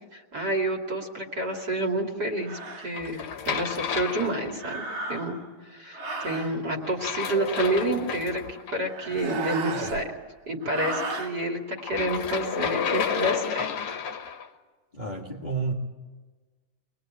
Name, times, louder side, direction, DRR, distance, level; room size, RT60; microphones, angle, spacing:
voice 1, 0.1-3.2 3.5-5.4 5.6-10.1 10.5-13.7, right 1 dB, 30° right, 2 dB, 2.6 m, -29 dB
sound 1, 1.5-1.6 2.4-2.9 4.5-5.5 5.9-6.6 8.7-10.2 10.6-11.3, right 2 dB, 85° right, 4.8 m, -36 dB
sound 2, 2.9-4.9 6.8-8.8 11.8-14.5, left 7 dB, 55° left, 1.8 m, -31 dB
sound 3, 6.8-8.3 9.0-10.1, right 7 dB, 65° right, 2.3 m, -37 dB
voice 2, 14.9-15.7, right 4 dB, 25° left, -2 dB, 0.9 m, -30 dB
24.5 x 21.0 x 8.9 m, 1.3 s
omnidirectional pair, 3.8 m